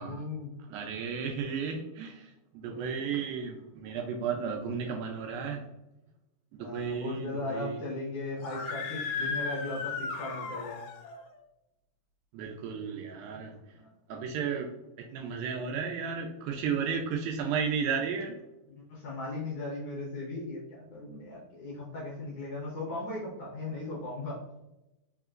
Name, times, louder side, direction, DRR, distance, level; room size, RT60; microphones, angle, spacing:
voice 1, 0.0-0.5 2.6-3.0 6.6-10.8 13.7-13.9 18.9-24.4, left 2 dB, 75° left, -5 dB, 1.4 m, -37 dB
voice 2, 0.7-5.7 6.5-7.8 12.3-13.6 14.1-14.7 15.0-18.4, right 6 dB, 85° right, 2 dB, 2.3 m, -33 dB
Screaming, 8.4-11.2, left 5 dB, 90° left, 2.6 m, -35 dB
5.6 x 2.9 x 2.4 m, 0.94 s
omnidirectional pair, 4.2 m